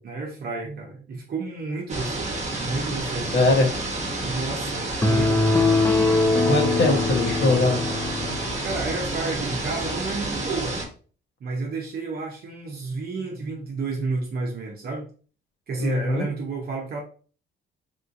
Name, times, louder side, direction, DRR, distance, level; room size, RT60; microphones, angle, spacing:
voice 1, 0.0-3.5 4.2-5.6 8.6-10.8 11.4-15.1 15.7-17.0, right 3 dB, 50° right, -1 dB, 0.7 m, -31 dB
sound 1, 1.9-10.9, right 2 dB, 35° right, 1.1 m, -30 dB
voice 2, 3.3-3.7 6.5-7.8 15.8-16.3, left 2 dB, 65° left, 1 dB, 1.2 m, -21 dB
sound 2, 5.0-8.6, left 3 dB, 10° left, 0.5 m, -22 dB
3.6 x 2.6 x 2.5 m, 0.40 s
cardioid pair, 90°, 20 cm